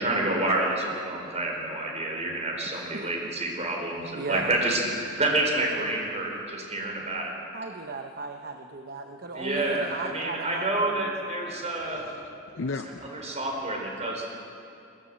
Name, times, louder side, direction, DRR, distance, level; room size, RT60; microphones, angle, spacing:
voice 1, 0.0-7.5 9.3-12.1 13.1-14.2, right 2 dB, 35° right, 0 dB, 4.3 m, -28 dB
voice 2, 4.1-4.6 7.5-11.1, right 3 dB, 50° right, 5 dB, 0.9 m, -36 dB
voice 3, 11.8-13.4, left 3 dB, 65° left, 7 dB, 0.6 m, -37 dB
22.0 x 16.0 x 7.6 m, 2.7 s
head